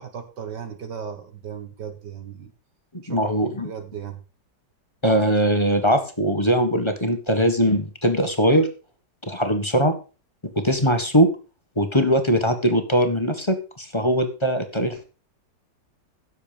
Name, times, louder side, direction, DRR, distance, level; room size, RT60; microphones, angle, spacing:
voice 1, 0.0-2.5 3.0-4.2, right 7 dB, 70° right, 8 dB, 2.1 m, -36 dB
voice 2, 2.9-3.7 5.0-8.7 9.3-9.9 10.4-11.3 11.7-15.0, equal, 15° left, 7 dB, 1.6 m, -21 dB
16.0 x 7.4 x 5.2 m, 0.34 s
omnidirectional pair, 1.9 m